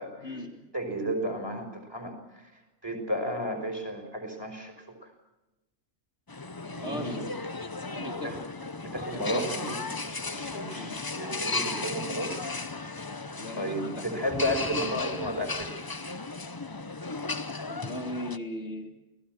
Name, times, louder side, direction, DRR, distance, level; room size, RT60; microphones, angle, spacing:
voice 1, 0.2-0.6 6.8-7.2 7.9-8.4 9.0-9.5 10.7-11.0 13.4-14.2 17.7-19.0, left 1 dB, 45° left, 1 dB, 2.8 m, -38 dB
voice 2, 0.7-2.5 2.8-5.1 6.7-7.2 8.2-8.4 8.8-9.8 10.0-12.5 12.9-13.2 13.6-16.2, equal, 15° right, 5 dB, 5.2 m, -33 dB
Tokyo - Asakusa Shrine, 6.3-18.4, left 3 dB, 25° left, 0.5 m, -35 dB
29.5 x 19.0 x 6.1 m, 1.0 s
omnidirectional pair, 1.6 m